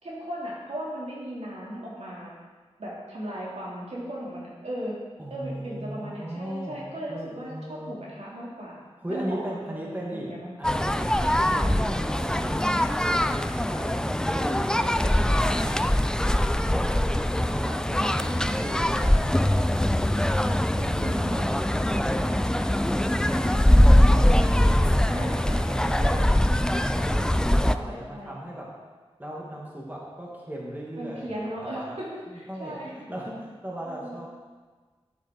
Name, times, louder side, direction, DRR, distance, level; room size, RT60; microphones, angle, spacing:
voice 1, 0.0-2.3 2.8-5.0 5.3-8.8 9.1-10.5 11.1-11.3 12.4-12.8 14.7-15.2 17.9-18.6 20.8-21.4 23.0-24.5 25.0-25.9 27.0-28.4 31.0-32.9 33.8-34.2, right 1 dB, 85° right, -6 dB, 3.0 m, -37 dB
voice 2, 5.2-6.8 7.1-8.0 9.0-14.7 15.2-15.8 16.7-18.2 18.6-20.6 21.0-24.7 25.1-28.8 29.2-32.0 32.3-34.3, right 1 dB, 15° right, -3 dB, 2.2 m, -37 dB
sound 1, 10.6-27.8, left 1 dB, 5° left, 0.4 m, -22 dB
11.0 x 7.6 x 4.6 m, 1.4 s
wide cardioid pair, 65°, 11 cm